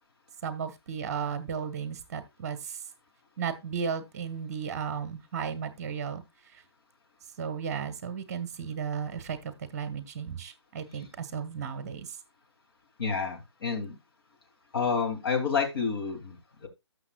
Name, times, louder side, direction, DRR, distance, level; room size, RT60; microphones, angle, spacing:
voice 1, 0.4-2.8 3.4-6.2 6.5-6.6 7.4-12.2, right 7 dB, 35° right, 1.2 m, -34 dB
voice 2, 13.0-13.9 14.7-16.7, left 5 dB, 55° left, 2.7 m, -29 dB
13.5 x 6.5 x 2.3 m
figure-of-eight pair, 145°, 15 cm